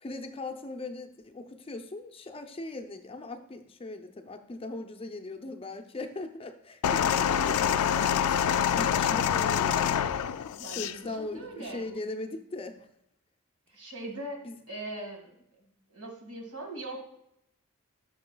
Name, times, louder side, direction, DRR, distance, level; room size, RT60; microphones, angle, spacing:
voice 1, 0.0-10.0 10.7-12.9 14.4-14.6 15.6-15.7, left 2 dB, 25° left, 6 dB, 0.5 m, -39 dB
sound 1, 6.8-11.0 11.8-12.0, left 8 dB, 85° left, 0.3 m, -26 dB
voice 2, 10.6-11.8 13.7-15.3 15.9-17.0, right 1 dB, 80° right, 2 dB, 1.9 m, -40 dB
11.5 x 6.2 x 2.3 m, 0.78 s
head